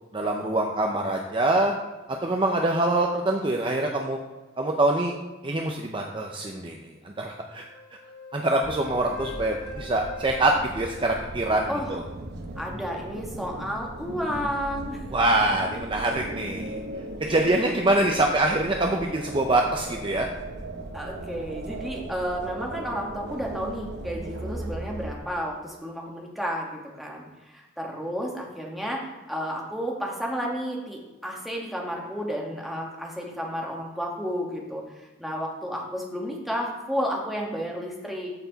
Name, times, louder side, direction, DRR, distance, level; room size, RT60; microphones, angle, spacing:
voice 1, 0.1-1.7 2.1-4.2 4.6-5.1 5.4-6.8 7.0-7.6 8.3-12.0 15.1-16.8 17.3-20.3, right 2 dB, 25° right, 2 dB, 0.6 m, -24 dB
Wind instrument woodwind instrument, 7.7-11.9, left 2 dB, 90° left, 2.4 m, -43 dB
sound 1, 8.6-25.2, right 1 dB, 55° right, 0.9 m, -37 dB
voice 2, 12.6-15.0 17.3-17.7 20.9-34.8 35.2-38.3, equal, ahead, -2 dB, 1.4 m, -32 dB
13.5 x 4.6 x 4.0 m, 1.2 s
head